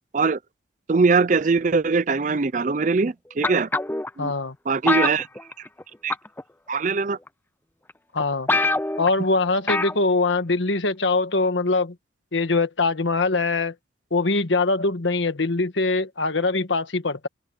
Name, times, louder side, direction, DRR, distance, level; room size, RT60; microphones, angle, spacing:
voice 1, 0.9-3.7 4.2-4.3 4.7-5.3 6.0-6.1 6.7-7.2, right 4 dB, 40° right, 0.5 m, -21 dB
sound 1, 3.4-4.1 4.9-5.8 6.1-6.4 7.3-7.4 7.9-8.0 8.2-8.3 8.5-9.1 9.7-10.0 10.3-10.4, left 2 dB, 10° left, 0.5 m, -24 dB
voice 2, 4.2-4.5 8.1-8.5 9.0-11.9 12.3-13.7 14.1-17.3, left 3 dB, 85° left, 1.4 m, -22 dB
head